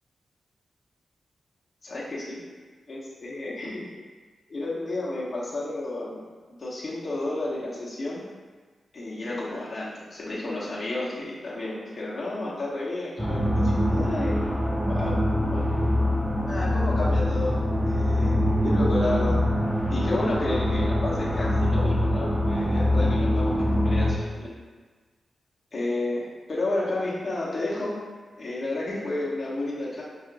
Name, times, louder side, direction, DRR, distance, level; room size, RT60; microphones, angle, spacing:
voice 1, 1.8-2.4 2.9-3.9 4.5-6.2 6.6-8.2 8.9-14.3 14.8-15.2 15.5-15.6 16.5-18.3 18.6-19.4 19.9-24.5 25.7-28.0 28.4-30.0, left 2 dB, 40° left, -7 dB, 1.0 m, -31 dB
sound 1, 13.2-24.1, left 1 dB, 5° right, 0.6 m, -24 dB
5.6 x 2.6 x 2.5 m, 1.4 s
wide cardioid pair, 110°, 0 cm